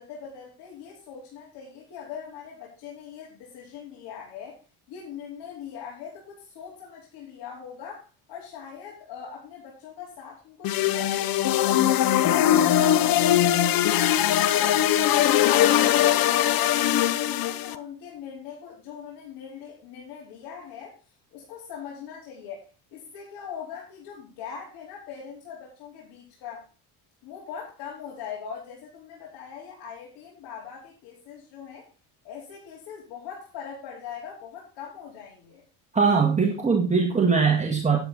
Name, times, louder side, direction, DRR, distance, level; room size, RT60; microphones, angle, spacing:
voice 1, 0.0-4.6 4.9-15.6 15.9-21.0 21.3-26.7 27.2-31.9 32.2-35.6, left 7 dB, 70° left, -5 dB, 4.7 m, -41 dB
sound 1, 10.6-17.7, left 11 dB, 55° left, 0.9 m, -21 dB
voice 2, 35.9-38.0, right 5 dB, 15° right, 1 dB, 2.1 m, -21 dB
10.5 x 9.2 x 4.2 m, 0.31 s
supercardioid pair, 90°, 42 cm